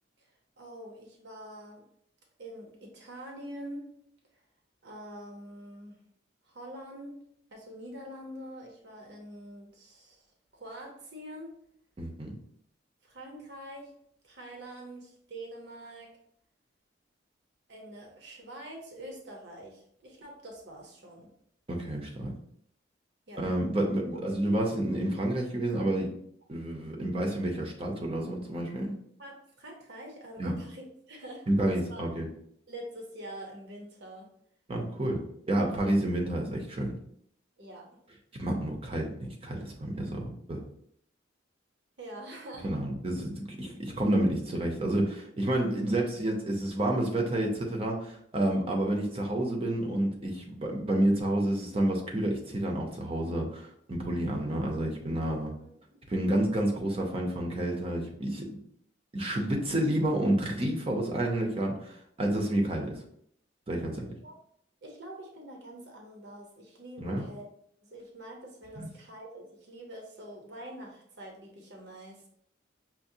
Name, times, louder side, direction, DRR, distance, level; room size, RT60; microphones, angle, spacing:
voice 1, 0.6-1.8 2.4-3.9 4.8-6.0 6.4-7.2 7.5-10.3 10.5-11.5 13.0-13.9 14.2-16.1 17.7-21.3 23.3-23.4 24.1-24.2 29.2-32.0 32.7-34.3 37.6-37.9 42.0-42.7 55.6-56.0 64.2-64.4 64.8-67.5 67.8-72.3, right 1 dB, 60° right, 0 dB, 0.8 m, -45 dB
voice 2, 12.0-12.3 21.7-22.3 23.4-26.1 26.5-28.9 30.4-30.5 31.5-32.2 34.7-36.9 38.4-40.6 42.6-55.5 56.1-58.6 59.1-63.0 63.7-64.0 67.0-67.2 68.8-68.9, right 1 dB, 30° right, 1 dB, 0.6 m, -29 dB
5.8 x 2.1 x 2.6 m, 0.68 s
head